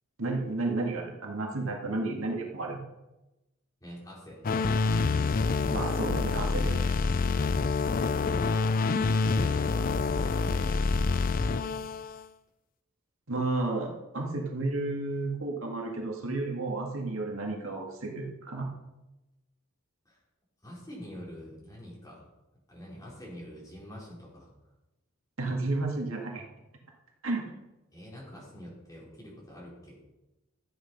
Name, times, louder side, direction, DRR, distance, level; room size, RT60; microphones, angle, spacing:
voice 1, 0.2-2.8 5.7-7.0 13.3-18.7 25.4-26.4 27.2-27.4, right 2 dB, 70° right, 0 dB, 2.1 m, -32 dB
voice 2, 3.8-4.4 9.4-11.9 20.1-20.2 20.6-22.2 22.7-24.5 27.9-29.9, equal, 15° left, -5 dB, 4.1 m, -46 dB
sound 1, 4.4-12.2, left 4 dB, 40° left, 0.4 m, -27 dB
13.0 x 8.3 x 5.4 m, 0.99 s
head